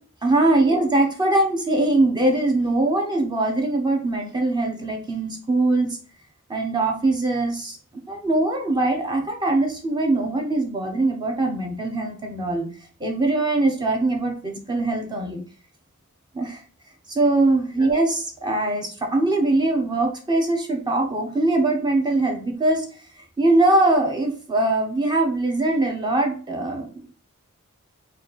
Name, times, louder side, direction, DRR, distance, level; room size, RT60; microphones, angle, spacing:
voice 1, 0.2-6.0 6.5-7.8 8.1-12.7 13.0-15.4 16.3-16.6 17.1-22.8 23.4-26.9, right 2 dB, 20° right, 2 dB, 0.8 m, -22 dB
4.1 x 2.5 x 4.0 m, 0.41 s
head